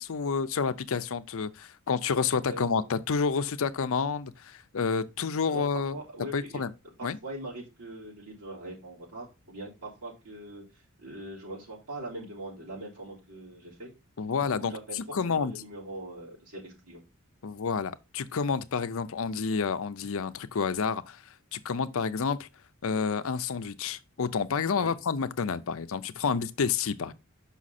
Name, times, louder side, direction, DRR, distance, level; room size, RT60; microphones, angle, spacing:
voice 1, 0.0-6.0 6.3-6.7 7.0-7.2 14.2-15.5 17.4-21.2 21.5-22.5 22.8-27.1, left 5 dB, 65° left, 0.6 m, -29 dB
voice 2, 2.5-2.9 5.5-6.7 7.0-13.9 14.3-17.0 24.7-24.9, right 1 dB, 85° right, 3.9 m, -42 dB
6.1 x 5.6 x 4.2 m
head